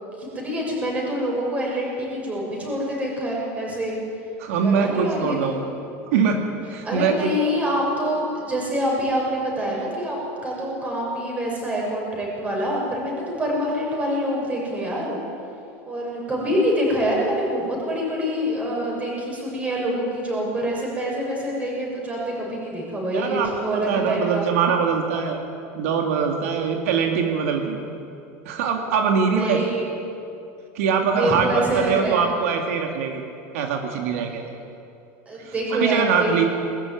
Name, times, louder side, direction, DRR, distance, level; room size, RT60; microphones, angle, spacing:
voice 1, 0.2-3.9 4.6-5.6 6.8-15.2 15.9-24.5 29.2-29.8 31.0-32.2 35.3-36.5, equal, 20° right, -3 dB, 6.8 m, -26 dB
voice 2, 4.4-5.6 6.1-6.4 6.7-7.3 23.1-25.4 25.8-27.8 28.5-29.6 30.7-33.2 33.5-34.5 35.4-36.4, right 6 dB, 85° right, 3 dB, 2.2 m, -23 dB
21.0 x 13.5 x 9.6 m, 2.7 s
supercardioid pair, 145°, 7 cm